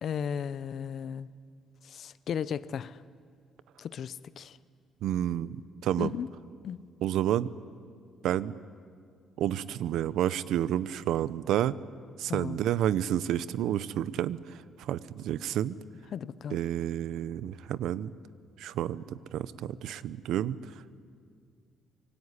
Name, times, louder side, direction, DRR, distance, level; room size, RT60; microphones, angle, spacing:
voice 1, 0.0-1.3 1.8-3.0 3.8-4.6 6.0-6.3 6.6-6.9 12.3-12.6 16.1-16.6, left 8 dB, 50° left, 0.7 m, -35 dB
voice 2, 5.0-5.6 5.8-6.1 7.0-7.5 8.2-8.5 9.4-11.7 12.2-14.4 14.8-15.8 16.5-18.1 18.6-20.6, right 11 dB, 80° right, 0.8 m, -30 dB
25.0 x 23.5 x 9.9 m
cardioid pair, 155°, 0 cm